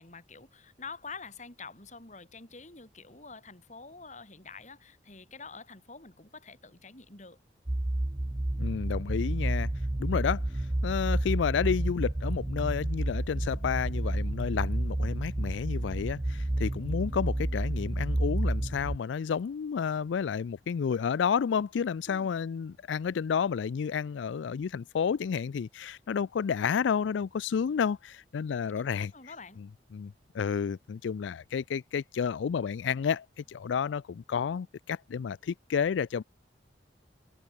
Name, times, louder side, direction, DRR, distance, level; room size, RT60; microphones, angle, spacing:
voice 1, 0.0-7.4 22.1-22.3 28.5-29.6, left 4 dB, 40° left, 3.9 m, -47 dB
sound 1, 7.7-19.0, right 1 dB, 20° right, 0.5 m, -30 dB
voice 2, 8.6-9.7 10.0-10.4 10.8-29.1 29.9-36.2, left 6 dB, 85° left, 0.4 m, -31 dB
head